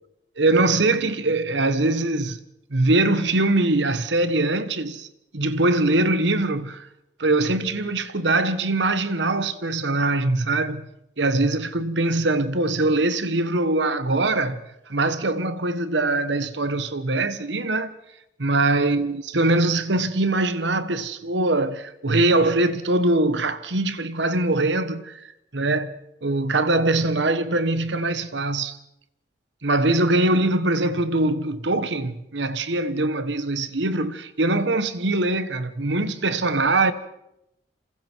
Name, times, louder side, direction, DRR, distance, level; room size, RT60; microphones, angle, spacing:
voice 1, 0.4-2.4 2.7-5.1 5.3-6.9 7.2-10.9 11.2-14.6 14.9-17.9 18.4-25.2 25.5-26.0 26.2-28.8 29.6-36.9, right 2 dB, 75° right, 1.3 m, -22 dB
27.5 x 27.0 x 4.6 m
head